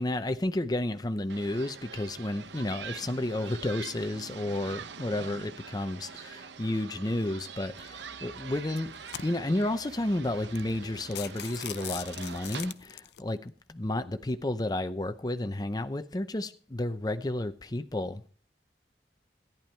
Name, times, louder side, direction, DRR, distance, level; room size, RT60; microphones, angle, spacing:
voice 1, 0.0-8.9 9.2-18.3, left 1 dB, 20° left, 0.7 m, -32 dB
sound 1, 1.3-12.7, right 6 dB, 85° right, 0.9 m, -45 dB
Engine, 6.9-12.7, right 2 dB, 70° right, 2.8 m, -59 dB
sound 2, 7.8-8.1 8.7-9.6 10.2-10.3 10.6-10.7 11.0-13.2, left 11 dB, 70° left, 0.6 m, -41 dB
14.5 x 10.5 x 4.5 m
head